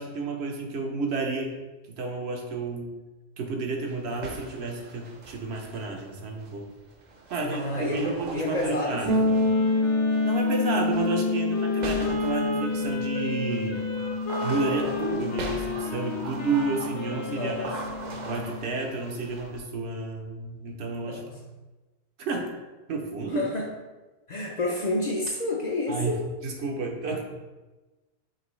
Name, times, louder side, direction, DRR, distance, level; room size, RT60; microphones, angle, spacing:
voice 1, 0.0-1.6 1.9-2.9 3.4-6.6 7.3-9.4 10.2-13.8 14.4-17.7 18.2-21.2 22.2-22.5 22.9-23.5 25.9-27.2, right 3 dB, 70° right, 2 dB, 0.9 m, -31 dB
sound 1, 3.9-19.6, right 3 dB, 50° right, 0.6 m, -41 dB
voice 2, 7.4-9.2 17.3-17.7 21.0-21.3 23.3-23.7 24.3-26.2, left 2 dB, 50° left, -1 dB, 0.5 m, -29 dB
sound 2, 9.0-18.8, left 2 dB, 90° right, 1.6 m, -28 dB
Wind instrument woodwind instrument, 9.2-18.1, left 4 dB, 90° left, 1.0 m, -34 dB
5.2 x 3.0 x 3.1 m, 1.2 s
omnidirectional pair, 1.1 m